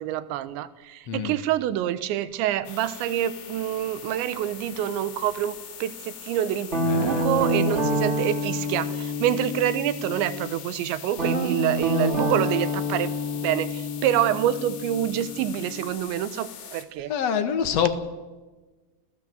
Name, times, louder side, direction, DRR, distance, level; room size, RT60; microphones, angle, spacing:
voice 1, 0.0-17.1, right 11 dB, 75° right, 14 dB, 3.2 m, -27 dB
sound 1, 2.6-16.8, left 8 dB, 55° left, 3.6 m, -42 dB
Guitar, 6.7-10.5 11.1-15.9, equal, 25° right, 1.5 m, -27 dB
voice 2, 6.8-7.2 17.1-17.9, left 8 dB, 80° left, 7 dB, 1.4 m, -25 dB
29.5 x 15.5 x 7.8 m, 1.2 s
omnidirectional pair, 5.4 m